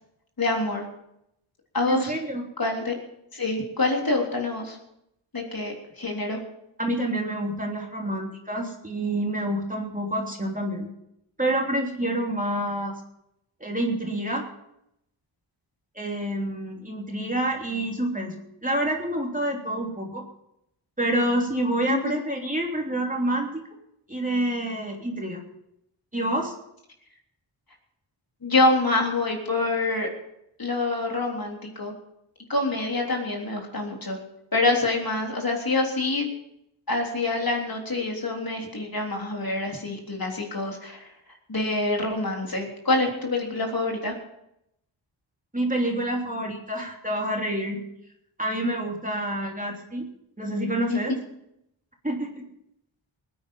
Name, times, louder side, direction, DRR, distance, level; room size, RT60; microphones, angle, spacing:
voice 1, 0.4-0.9 1.7-2.1 2.6-3.0 3.3-4.8 5.3-6.4 21.9-22.2 28.4-30.1 30.6-31.9 32.5-34.2 34.5-36.3 36.9-41.1 41.5-44.1 50.9-51.0, left 2 dB, 45° left, 1 dB, 3.6 m, -26 dB
voice 2, 1.9-2.4 6.8-10.9 11.4-12.9 13.6-14.5 15.9-18.3 18.6-20.2 21.0-23.6 24.1-25.4 26.1-26.5 45.5-47.8 48.4-50.1 50.4-51.2 52.0-52.5, right 1 dB, 15° right, 0 dB, 3.1 m, -27 dB
20.0 x 9.6 x 5.5 m, 0.80 s
cardioid pair, 65°, 49 cm